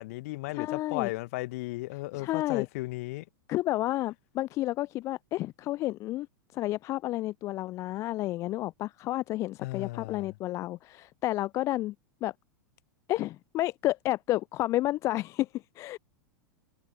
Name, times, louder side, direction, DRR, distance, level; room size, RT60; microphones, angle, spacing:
voice 1, 0.0-3.2 9.6-10.3, left 21 dB, 50° left, 1.7 m, -35 dB
voice 2, 0.5-1.1 2.1-2.7 3.5-6.3 6.5-11.9 12.2-12.3 13.1-16.0, left 16 dB, 30° left, 0.4 m, -31 dB
figure-of-eight pair, 90°, 10 cm